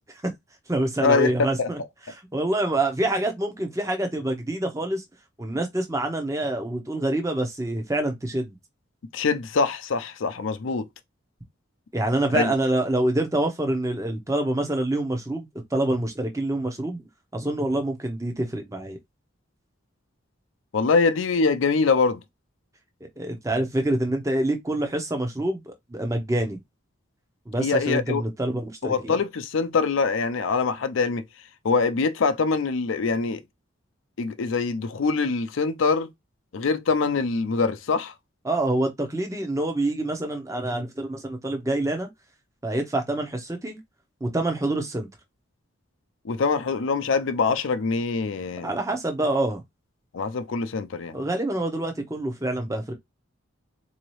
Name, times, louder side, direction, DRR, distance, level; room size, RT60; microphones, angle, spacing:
voice 1, 0.7-1.8 2.1-5.0 5.4-8.6 11.9-17.0 17.3-19.0 23.0-26.6 27.5-29.1 38.4-42.1 42.6-43.8 44.2-45.1 48.6-49.6 51.1-52.9, right 1 dB, 15° right, 0.7 m, -26 dB
voice 2, 9.1-10.8 12.3-12.5 20.7-22.2 27.6-28.2 28.8-31.2 31.6-33.4 34.2-36.1 36.5-38.1 46.2-48.7 50.1-51.2, left 4 dB, 70° left, 0.5 m, -24 dB
3.9 x 2.7 x 3.1 m
head